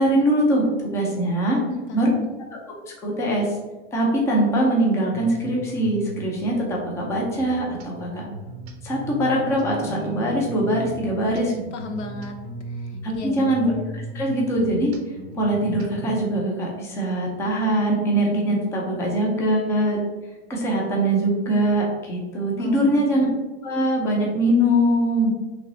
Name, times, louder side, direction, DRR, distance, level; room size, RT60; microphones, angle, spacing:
voice 1, 0.0-1.6 1.9-2.1 2.9-3.5 3.9-8.2 8.8-11.5 13.0-14.9 15.3-20.0 20.5-23.2 23.6-25.3, right 1 dB, 10° left, -2 dB, 0.5 m, -22 dB
voice 2, 1.6-2.3 11.7-12.3 12.8-13.6 22.6-23.0, left 3 dB, 85° left, 5 dB, 0.9 m, -34 dB
sound 1, 5.1-16.2, right 1 dB, 35° right, 0.6 m, -37 dB
5.5 x 3.2 x 2.7 m, 1.2 s
supercardioid pair, 155°, 34 cm